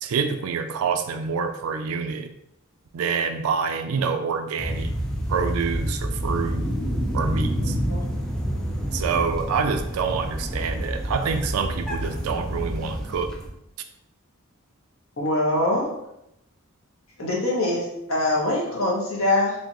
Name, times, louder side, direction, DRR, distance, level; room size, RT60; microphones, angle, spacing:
voice 1, 0.0-2.3 2.9-4.9 5.3-6.7 7.1-7.8 8.9-13.3, right 5 dB, 90° right, 7 dB, 0.4 m, -27 dB
sound 1, 4.6-13.5, equal, 5° left, 0.5 m, -28 dB
voice 2, 7.6-8.0 15.2-15.9 17.2-19.5, left 1 dB, 75° left, -3 dB, 1.3 m, -24 dB
4.3 x 3.0 x 2.9 m, 0.81 s
head